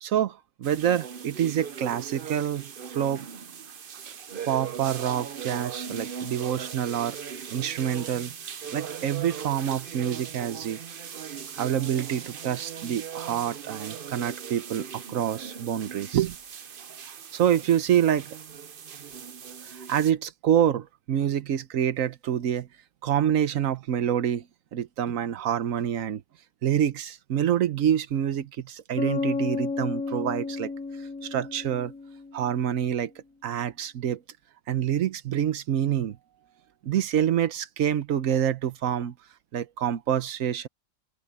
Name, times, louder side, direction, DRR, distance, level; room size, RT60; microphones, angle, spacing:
voice 1, 0.0-3.3 4.5-7.2 7.5-8.3 8.7-10.8 11.5-16.4 17.3-18.3 19.9-22.7 23.0-24.4 24.7-26.2 26.6-30.7 31.2-31.9 32.3-33.1 33.4-34.2 34.7-36.2 36.8-39.1 39.5-40.7, right 10 dB, 80° right, 1.2 m, -26 dB
sound 1, 0.6-20.1, right 7 dB, 45° right, 0.9 m, -39 dB
Bass guitar, 29.0-32.6, left 4 dB, 85° left, 1.4 m, -32 dB
open air
omnidirectional pair, 1.4 m